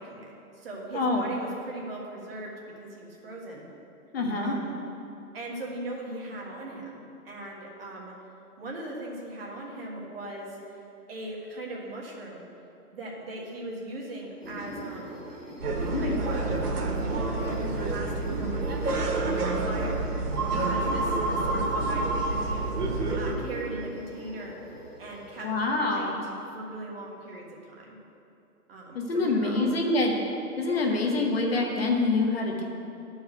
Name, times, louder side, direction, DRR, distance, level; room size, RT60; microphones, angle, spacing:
voice 1, 0.0-3.7 4.3-4.8 5.3-8.1 8.6-10.8 11.1-12.5 12.9-15.2 15.9-16.6 17.0-17.5 17.8-18.6 19.2-20.0 20.5-22.6 23.1-24.6 25.0-26.1 26.5-28.0 28.7-29.8 30.6-30.9, right 1 dB, 40° right, -2 dB, 1.4 m, -39 dB
voice 2, 0.9-1.3 4.1-4.6 15.9-16.2 25.4-26.2 28.9-30.1 30.6-32.6, left 3 dB, 40° left, 0 dB, 1.0 m, -26 dB
sound 1, 14.4-25.7, right 1 dB, 55° right, 2.4 m, -42 dB
sound 2, 15.6-23.3, right 2 dB, 85° right, 1.6 m, -28 dB
11.0 x 4.7 x 6.5 m, 2.8 s
hypercardioid pair, 170°, 46 cm